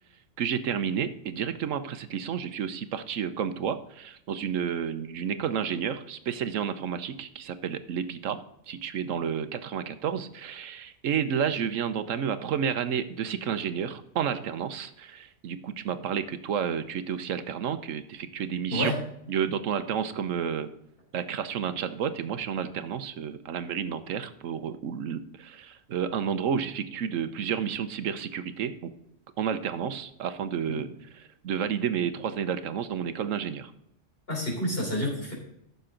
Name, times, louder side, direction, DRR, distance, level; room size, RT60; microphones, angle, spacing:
voice 1, 0.4-8.4 8.7-18.9 19.3-20.7 21.1-28.9 29.4-30.9 31.4-33.7, right 8 dB, 80° right, 11 dB, 1.1 m, -31 dB
voice 2, 18.7-19.0 30.7-30.8 34.3-35.3, left 1 dB, 50° left, -1 dB, 3.7 m, -29 dB
14.0 x 6.8 x 3.8 m, 0.77 s
omnidirectional pair, 1.3 m